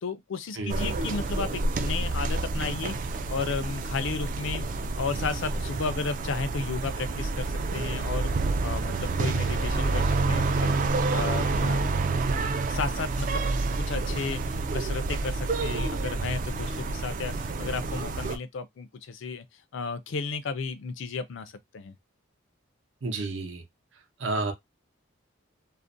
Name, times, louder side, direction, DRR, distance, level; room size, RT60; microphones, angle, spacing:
voice 1, 0.0-4.7 5.0-11.8 12.7-19.4 19.7-22.0, left 4 dB, 65° left, 0.4 m, -33 dB
voice 2, 0.6-0.9 23.0-23.6 24.2-24.5, right 3 dB, 65° right, 0.7 m, -30 dB
sound 1, 0.7-18.4, right 3 dB, 40° right, 0.3 m, -28 dB
2.4 x 2.1 x 2.5 m
head